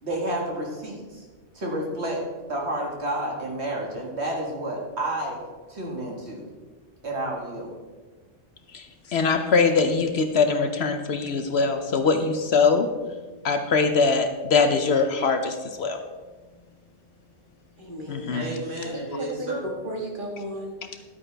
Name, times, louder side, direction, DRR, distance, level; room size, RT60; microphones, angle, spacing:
voice 1, 0.0-1.2 1.5-5.4 5.7-6.4 7.0-7.7 18.3-19.6, right 1 dB, 60° right, -1 dB, 2.1 m, -30 dB
voice 2, 9.1-12.9 13.4-16.0 18.1-18.5, left 4 dB, 60° left, 7 dB, 0.9 m, -22 dB
voice 3, 17.8-18.4 18.8-21.0, right 1 dB, 40° right, -1 dB, 2.0 m, -34 dB
12.0 x 8.7 x 3.4 m, 1.3 s
omnidirectional pair, 1.3 m